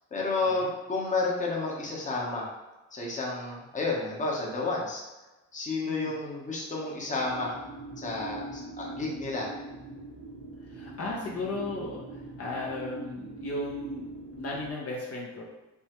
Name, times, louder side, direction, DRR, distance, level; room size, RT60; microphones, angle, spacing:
voice 1, 0.1-2.5 2.9-5.0 5.5-7.6 8.0-9.5, left 3 dB, 25° left, -3 dB, 1.0 m, -31 dB
sound 1, 7.2-14.7, right 2 dB, 45° right, 0.7 m, -42 dB
voice 2, 10.7-14.0 14.3-15.4, left 2 dB, 50° left, -3 dB, 1.0 m, -35 dB
5.4 x 2.1 x 3.0 m, 1.1 s
cardioid pair, 90°, 30 cm